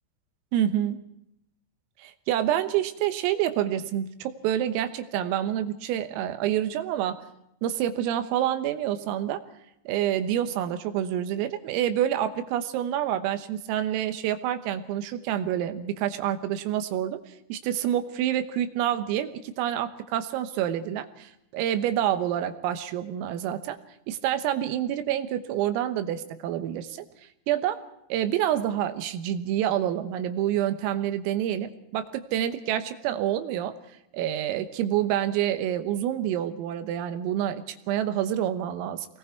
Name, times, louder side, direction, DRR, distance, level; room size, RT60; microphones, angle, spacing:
voice 1, 0.5-1.0 2.0-7.2 7.6-9.4 9.9-17.2 17.5-23.8 24.1-27.1 27.5-27.8 28.1-33.8 34.1-39.1, right 11 dB, 85° right, 9 dB, 3.9 m, -27 dB
28.0 x 21.0 x 4.6 m, 0.79 s
omnidirectional pair, 5.9 m